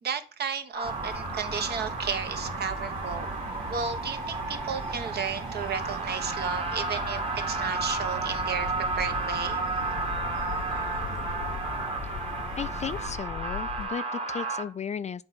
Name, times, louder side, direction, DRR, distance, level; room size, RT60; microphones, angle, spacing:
voice 1, 0.0-3.3 3.7-9.6, right 6 dB, 55° right, 1.2 m, -33 dB
sound 1, 0.7-14.6, right 3 dB, 30° right, 1.5 m, -33 dB
sound 2, 0.8-13.2, right 2 dB, 85° right, 2.8 m, -40 dB
sound 3, 7.5-13.9, left 10 dB, 70° left, 0.8 m, -40 dB
voice 2, 12.6-15.2, left 7 dB, 35° left, 0.4 m, -35 dB
7.8 x 4.3 x 5.7 m
cardioid pair, 90°, 20 cm